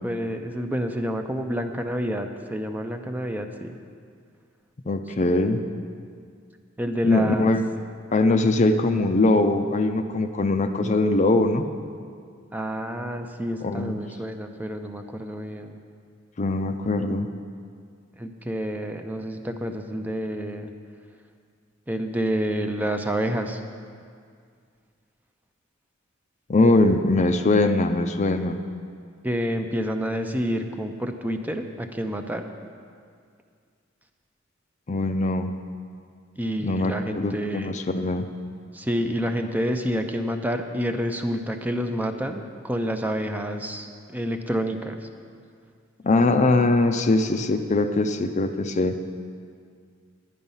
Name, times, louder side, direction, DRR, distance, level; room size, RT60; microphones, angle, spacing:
voice 1, 0.0-3.8 5.2-5.3 6.8-7.5 12.5-15.8 18.2-20.7 21.9-23.6 29.2-32.5 36.4-37.7 38.7-45.1, equal, 10° right, 5 dB, 0.5 m, -28 dB
voice 2, 4.9-5.6 7.0-7.6 8.1-11.7 13.6-14.0 16.4-17.3 26.5-28.6 34.9-35.5 36.6-38.3 46.0-49.0, left 2 dB, 35° left, 7 dB, 0.5 m, -21 dB
10.5 x 9.9 x 5.5 m, 2.2 s
head